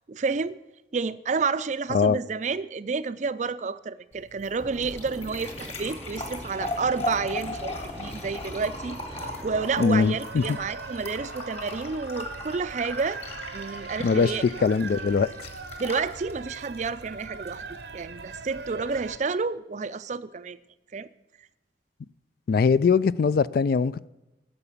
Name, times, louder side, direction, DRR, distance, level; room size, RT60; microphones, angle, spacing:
voice 1, 0.1-0.6 0.9-13.2 13.5-14.7 15.8-17.6 17.9-20.6 20.9-21.1, right 4 dB, 40° right, 0.4 m, -30 dB
sound 1, 4.1-19.1, left 2 dB, 35° left, 1.9 m, -39 dB
sound 2, 4.6-9.7, equal, 5° right, 0.7 m, -42 dB
sound 3, 7.5-19.2, right 4 dB, 70° right, 0.7 m, -41 dB
voice 2, 9.8-10.6 14.0-14.3 14.6-15.3 22.5-24.1, left 5 dB, 55° left, 0.3 m, -22 dB
10.5 x 7.0 x 8.3 m
head